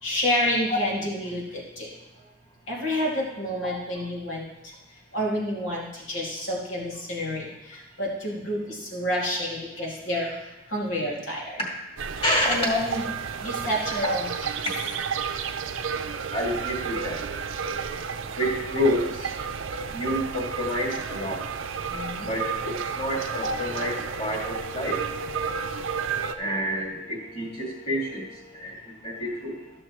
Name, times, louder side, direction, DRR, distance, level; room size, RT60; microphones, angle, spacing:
voice 1, 0.0-1.9 2.7-4.7 5.1-10.4 10.7-11.6 12.5-13.0 13.4-14.3 21.9-22.3, left 1 dB, 70° left, -4 dB, 2.5 m, -29 dB
sound 1, 12.0-26.4, right 6 dB, 85° right, 0.6 m, -32 dB
voice 2, 16.3-19.3 19.9-21.4 22.3-29.7, equal, 30° left, -3 dB, 2.3 m, -29 dB
13.5 x 6.3 x 3.1 m, 1.0 s
head